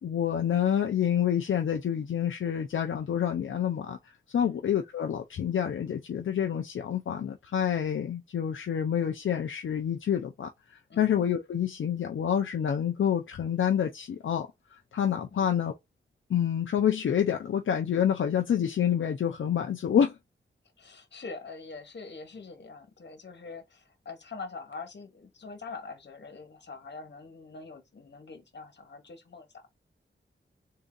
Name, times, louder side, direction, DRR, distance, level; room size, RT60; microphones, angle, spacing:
voice 1, 0.0-14.5 14.9-15.7 16.3-20.2, left 9 dB, 85° left, 0.5 m, -28 dB
voice 2, 20.8-29.7, left 4 dB, 65° left, 1.4 m, -44 dB
3.6 x 2.7 x 3.8 m
wide cardioid pair, 75°, 20 cm